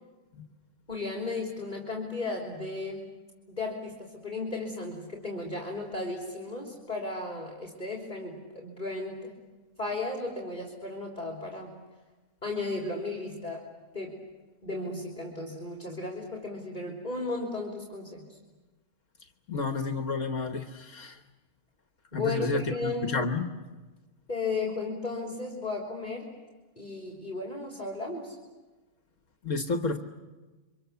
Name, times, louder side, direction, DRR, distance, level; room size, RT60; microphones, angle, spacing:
voice 1, 0.9-3.1 3.5-9.3 9.8-11.8 12.4-13.6 13.9-14.2 14.6-18.2 22.1-23.1 24.3-26.3 26.8-28.3, left 3 dB, 35° left, -1 dB, 3.5 m, -35 dB
voice 2, 19.5-21.2 22.1-23.4 29.4-30.0, left 3 dB, 65° left, 6 dB, 1.6 m, -30 dB
30.0 x 25.0 x 7.0 m, 1.2 s
omnidirectional pair, 1.4 m